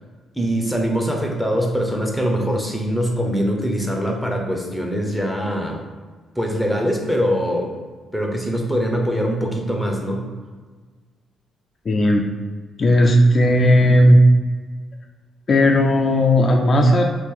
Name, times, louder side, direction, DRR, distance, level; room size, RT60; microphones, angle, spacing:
voice 1, 0.4-5.8 6.4-7.7 8.1-10.2, equal, ahead, 0 dB, 0.6 m, -22 dB
voice 2, 11.9-12.3 12.8-14.2 15.5-17.0, left 1 dB, 40° left, 1 dB, 0.3 m, -15 dB
2.9 x 2.5 x 3.6 m, 1.4 s
cardioid pair, 90°, 0 cm